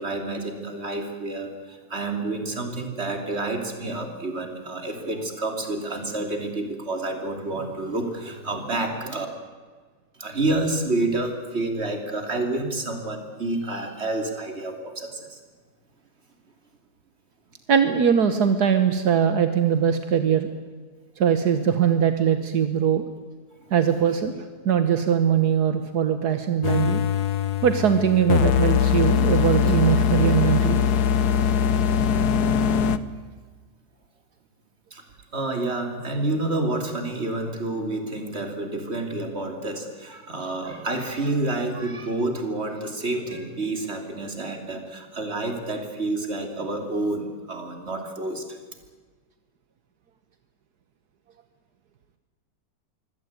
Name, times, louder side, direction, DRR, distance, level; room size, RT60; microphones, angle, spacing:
voice 1, 0.0-9.3 10.2-15.4 23.6-23.7 34.9-35.0 35.3-48.6, right 2 dB, 40° right, 5 dB, 3.3 m, -29 dB
voice 2, 17.7-20.5 21.2-23.0 23.7-27.0 27.6-30.8, right 8 dB, 80° right, 9 dB, 1.7 m, -21 dB
sound 1, 26.6-33.0, left 8 dB, 80° left, 1.5 m, -21 dB
24.5 x 17.0 x 9.5 m, 1.5 s
omnidirectional pair, 1.7 m